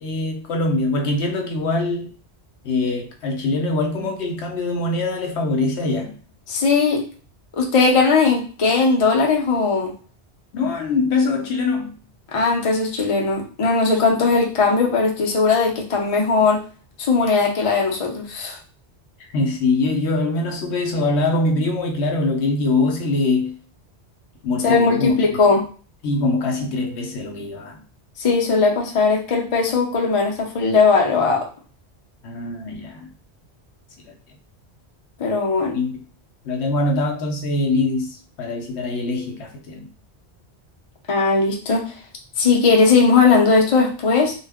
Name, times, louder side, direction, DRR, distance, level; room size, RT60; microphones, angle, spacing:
voice 1, 0.0-2.1 2.6-6.2 10.5-12.0 19.3-23.6 24.4-25.2 26.0-27.8 32.2-33.1 34.1-34.2 35.7-36.0 36.4-39.9, left 2 dB, 80° left, 0.9 m, -23 dB
voice 2, 6.5-7.0 7.5-9.9 12.3-16.6 17.0-18.6 24.6-25.6 28.2-31.5 35.2-35.8 41.1-41.9 42.4-44.3, left 4 dB, 40° left, 0.5 m, -18 dB
2.3 x 2.1 x 3.4 m
omnidirectional pair, 1.1 m